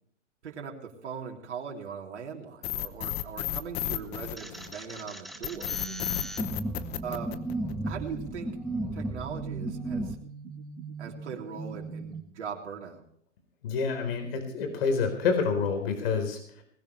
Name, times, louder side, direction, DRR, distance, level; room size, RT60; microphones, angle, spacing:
voice 1, 0.4-5.8 7.0-7.5 7.8-8.5 8.9-10.2 11.0-13.0, right 6 dB, 65° right, 0 dB, 3.4 m, -40 dB
sound 1, 2.6-4.9 5.4-7.9, left 15 dB, 30° left, 0.9 m, -32 dB
sound 2, 4.4-10.1, right 1 dB, ahead, 0.9 m, -35 dB
sound 3, 5.4-12.2, right 5 dB, 25° right, 2.5 m, -42 dB
voice 2, 13.6-16.6, left 5 dB, 55° left, 6 dB, 4.4 m, -28 dB
20.0 x 16.0 x 3.3 m, 0.63 s
hypercardioid pair, 130°, 36 cm